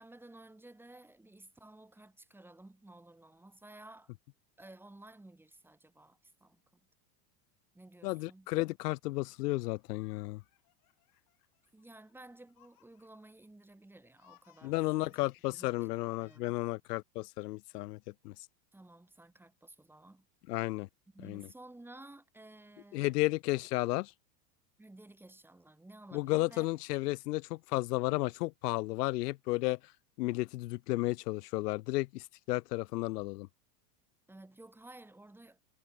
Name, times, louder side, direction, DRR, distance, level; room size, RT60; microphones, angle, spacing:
voice 1, 0.0-4.1 4.6-6.8 7.7-8.5 11.7-15.2 15.5-15.9 16.2-16.5 18.7-20.3 21.1-23.1 24.8-26.7 34.3-35.6, right 2 dB, 5° right, 1.5 m, -54 dB
voice 2, 8.0-10.4 14.6-18.0 18.2-18.3 20.5-20.9 21.2-21.5 22.9-24.1 26.1-29.8 30.2-33.5, left 20 dB, 75° left, 0.7 m, -33 dB
Laughter, 9.4-13.5 13.8-15.7 16.1-16.4, left 21 dB, 45° left, 7.5 m, -68 dB
supercardioid pair, 130°, 48 cm